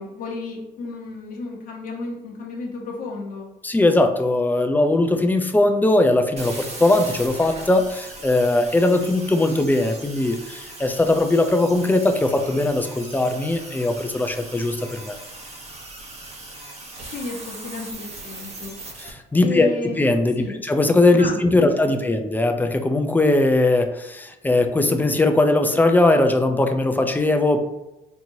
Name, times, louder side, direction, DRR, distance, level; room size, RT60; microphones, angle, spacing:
voice 1, 0.0-3.5 17.1-18.8 19.4-20.0 20.4-20.6 21.2-22.0, left 3 dB, 55° left, -1 dB, 1.1 m, -33 dB
voice 2, 3.6-15.2 19.0-27.6, left 2 dB, 10° left, 6 dB, 0.4 m, -20 dB
sound 1, 6.4-19.1, right 2 dB, 40° right, 0.9 m, -39 dB
4.4 x 2.8 x 2.7 m, 0.97 s
cardioid pair, 110°, 17 cm